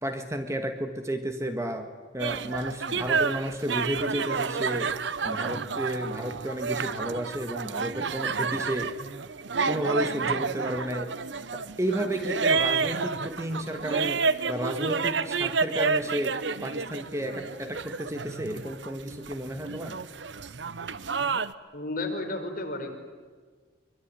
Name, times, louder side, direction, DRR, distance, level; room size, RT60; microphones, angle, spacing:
voice 1, 0.0-5.0 5.2-9.0 9.7-11.2 11.5-20.0, right 1 dB, 15° right, 6 dB, 1.7 m, -32 dB
sound 1, 2.2-21.5, right 5 dB, 75° right, 0.9 m, -30 dB
voice 2, 21.7-23.0, left 2 dB, 50° left, 3 dB, 4.8 m, -32 dB
24.0 x 24.0 x 9.9 m, 1.5 s
head